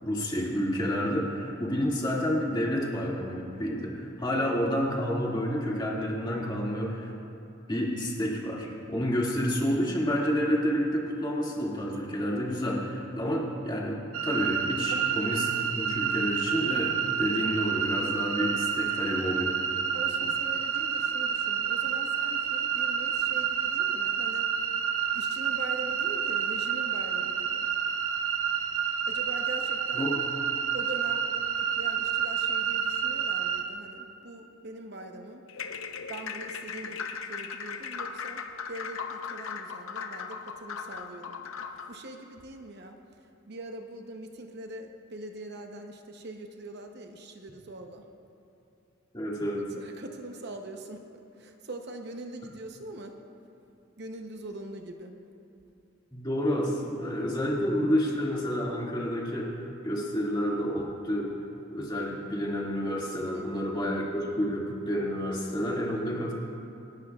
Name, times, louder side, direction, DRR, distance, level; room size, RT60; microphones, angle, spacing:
voice 1, 0.0-7.1 7.7-16.9 17.2-19.6 29.9-30.1 49.1-49.6 56.1-61.3 61.7-66.3, equal, 20° left, -4 dB, 2.1 m, -29 dB
sound 1, 14.1-33.6, right 8 dB, 75° right, 1.0 m, -29 dB
voice 2, 19.9-24.5 25.1-27.6 29.1-30.2 30.7-31.3 31.6-35.5 36.1-38.4 38.7-48.1 49.8-53.2 54.0-55.2 63.3-63.5, right 2 dB, 55° right, 4 dB, 0.8 m, -42 dB
sound 2, 35.5-42.0, left 6 dB, 75° left, 0.8 m, -38 dB
28.0 x 12.0 x 2.4 m, 2.9 s
head